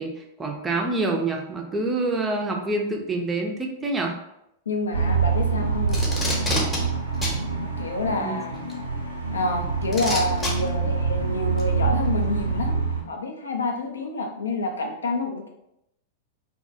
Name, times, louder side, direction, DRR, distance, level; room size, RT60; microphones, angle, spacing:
voice 1, 0.0-4.2 8.1-8.3, right 2 dB, 15° right, 1 dB, 0.4 m, -27 dB
voice 2, 4.7-6.0 7.8-8.7 9.3-15.5, left 2 dB, 75° left, 3 dB, 0.4 m, -28 dB
sound 1, 4.9-13.0, right 5 dB, 85° right, 0.4 m, -26 dB
Packing tape duct tape, 5.9-6.8 7.2-7.4 8.7-8.8 9.9-10.5 11.6-11.7, left 2 dB, 15° left, 0.7 m, -26 dB
2.2 x 2.1 x 2.6 m, 0.81 s
figure-of-eight pair, 95°, 0 cm